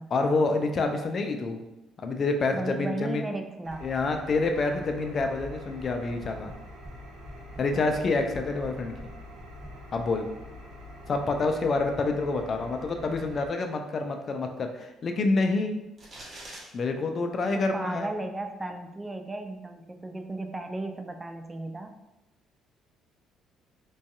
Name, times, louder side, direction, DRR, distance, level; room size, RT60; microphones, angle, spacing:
voice 1, 0.1-1.6 2.0-3.2 3.8-6.5 7.6-8.9 9.9-10.3 11.1-15.8 16.7-18.1, left 3 dB, 45° left, 5 dB, 0.4 m, -27 dB
voice 2, 2.5-3.9 7.7-7.9 17.5-22.0, right 2 dB, 20° right, 5 dB, 0.3 m, -35 dB
Engine, 3.6-13.5, left 1 dB, 70° right, 0.5 m, -45 dB
sound 1, 4.7-4.9 5.1-5.9 6.2-7.0 7.2-9.7, equal, ahead, 1.3 m, -46 dB
sound 2, 16.0-16.7, right 1 dB, 40° right, 0.8 m, -43 dB
2.6 x 2.3 x 2.4 m, 0.96 s
hypercardioid pair, 55°, 0 cm